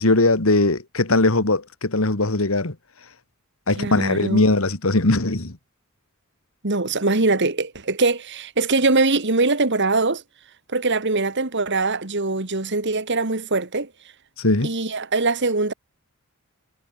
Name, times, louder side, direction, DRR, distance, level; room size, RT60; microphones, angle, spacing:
voice 1, 0.0-2.8 3.7-5.6 14.4-14.7, left 2 dB, 65° left, 2.1 m, -20 dB
voice 2, 3.8-4.4 6.6-10.2 10.7-13.9 14.6-15.7, right 3 dB, 55° right, 2.2 m, -22 dB
head